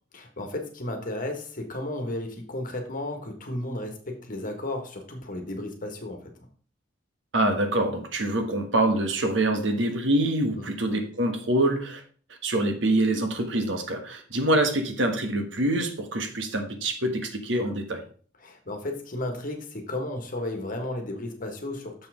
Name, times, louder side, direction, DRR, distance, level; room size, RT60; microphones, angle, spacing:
voice 1, 0.1-6.3 10.6-10.7 18.4-22.1, left 1 dB, 45° left, 4 dB, 1.5 m, -34 dB
voice 2, 7.3-12.0 12.4-18.0, right 1 dB, 70° right, 6 dB, 1.4 m, -25 dB
6.9 x 5.8 x 4.9 m, 0.42 s
head